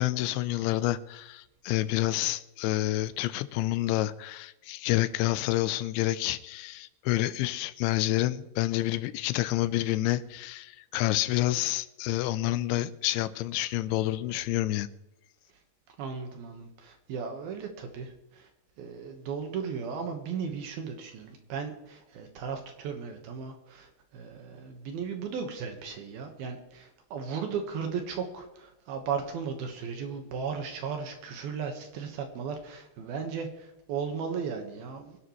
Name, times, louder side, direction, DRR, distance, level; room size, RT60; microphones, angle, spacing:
voice 1, 0.0-14.9, left 15 dB, 90° left, 3.0 m, -28 dB
voice 2, 16.0-18.5 18.8-35.2, right 6 dB, 65° right, 2.9 m, -36 dB
24.0 x 11.0 x 3.2 m
omnidirectional pair, 5.2 m